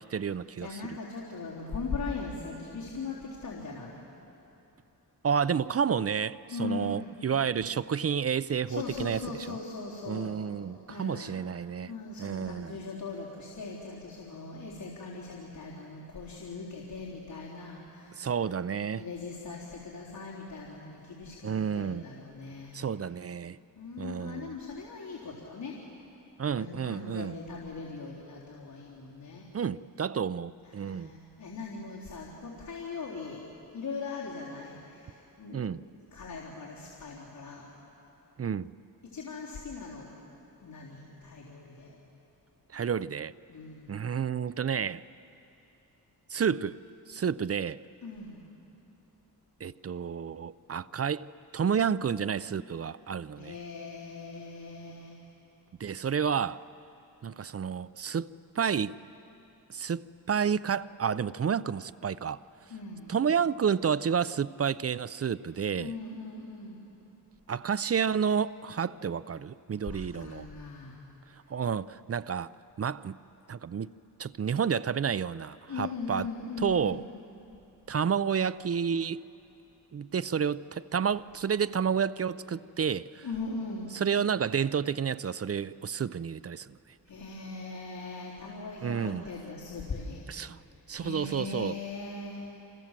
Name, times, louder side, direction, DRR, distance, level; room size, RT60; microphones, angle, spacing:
voice 1, 0.0-1.0 5.2-9.6 10.1-11.9 12.2-12.8 18.2-19.1 21.4-22.0 22.7-23.6 24.0-24.6 26.4-27.4 29.5-31.1 35.5-35.8 38.4-38.7 42.7-43.3 43.9-45.0 46.3-46.8 47.1-47.8 49.6-51.3 51.5-53.5 55.8-56.6 57.2-59.0 59.7-62.4 63.1-65.9 67.5-70.5 71.5-72.5 72.8-73.2 73.5-73.9 74.2-76.3 76.6-77.1 77.9-79.2 79.9-83.3 83.9-86.8 88.8-89.3 90.3-90.6 90.9-91.8, right 7 dB, 40° right, 0.5 m, -30 dB
voice 2, 0.6-4.0 6.5-7.0 8.7-10.4 10.9-11.4 11.8-18.3 18.9-22.8 23.7-25.8 26.5-29.5 30.7-33.4 33.7-35.7 36.1-37.6 39.1-40.1 40.6-42.0 43.5-43.9 48.0-48.4 53.3-55.2 62.7-63.2 65.8-66.8 69.9-71.0 75.7-77.1 83.2-84.0 87.1-90.2 90.9-92.5, left 4 dB, 65° left, 3.9 m, -40 dB
28.0 x 28.0 x 7.5 m
wide cardioid pair, 100°, 38 cm